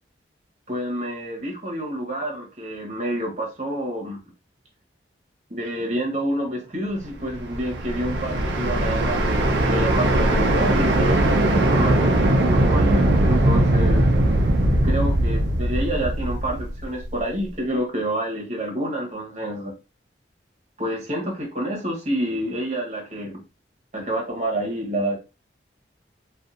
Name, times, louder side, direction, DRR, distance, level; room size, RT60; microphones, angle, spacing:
voice 1, 0.7-4.2 5.5-11.2 11.7-14.3 14.8-19.7 20.8-23.4 23.9-25.1, right 1 dB, 40° right, 1.0 m, -28 dB
sound 1, 7.2-17.2, right 1 dB, 75° right, 0.5 m, -20 dB
2.6 x 2.4 x 2.5 m
head